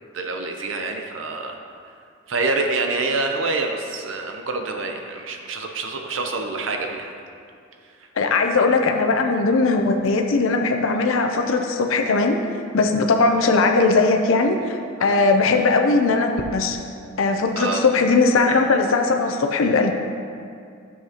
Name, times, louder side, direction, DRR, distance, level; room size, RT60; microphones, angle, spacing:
voice 1, 0.1-1.6 2.3-7.1 15.0-15.2 17.6-17.8, right 3 dB, 75° right, 3 dB, 0.6 m, -26 dB
voice 2, 8.2-12.4 12.7-16.8 17.2-19.9, left 3 dB, 90° left, 4 dB, 0.5 m, -19 dB
10.5 x 7.2 x 2.9 m, 2.4 s
head